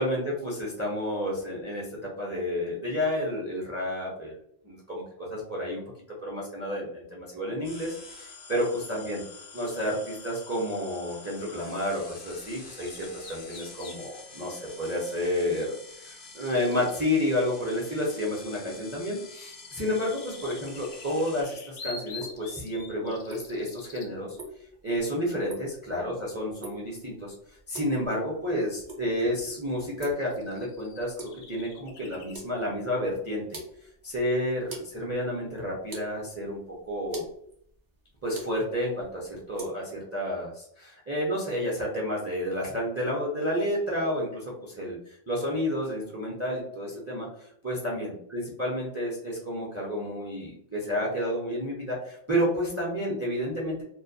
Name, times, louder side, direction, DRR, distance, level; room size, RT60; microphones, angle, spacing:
voice 1, 0.0-1.9 2.2-4.4 4.6-5.0 5.3-5.8 6.2-9.2 9.5-15.7 15.9-24.4 24.8-27.3 27.7-33.6 34.0-36.6 36.9-37.2 38.2-47.3 47.6-53.8, equal, 20° right, -4 dB, 0.4 m, -30 dB
sound 1, 7.6-21.4, left 3 dB, 50° left, 0.5 m, -47 dB
sound 2, 12.8-14.0 15.6-17.0 18.4-24.1 28.5-28.6 29.7-29.8 30.2-32.4, left 3 dB, 80° left, 0.9 m, -47 dB
sound 3, 22.1-39.7, right 1 dB, 50° right, 0.8 m, -46 dB
2.2 x 2.1 x 2.6 m, 0.69 s
omnidirectional pair, 1.2 m